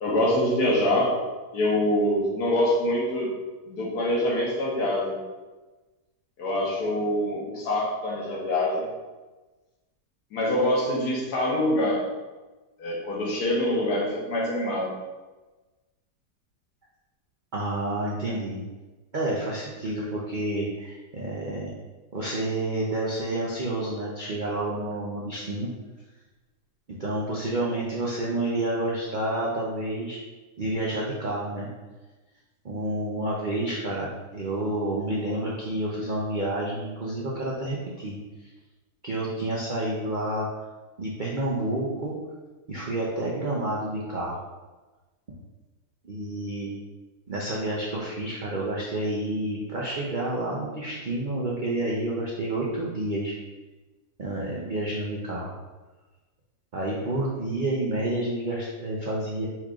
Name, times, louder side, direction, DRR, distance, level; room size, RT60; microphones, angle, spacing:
voice 1, 0.0-1.2 1.5-3.4 3.7-5.2 6.4-8.9 10.3-12.1 12.8-14.9, left 1 dB, 65° left, -3 dB, 1.6 m, -25 dB
voice 2, 17.5-18.6 19.1-21.7 22.1-25.7 27.0-30.2 30.6-31.7 32.6-38.2 39.0-40.5 41.0-42.2 42.7-44.4 46.0-46.8 47.3-53.4 54.2-55.5 56.7-59.5, right 1 dB, 75° right, -5 dB, 0.4 m, -29 dB
4.7 x 4.4 x 2.4 m, 1.2 s
omnidirectional pair, 1.8 m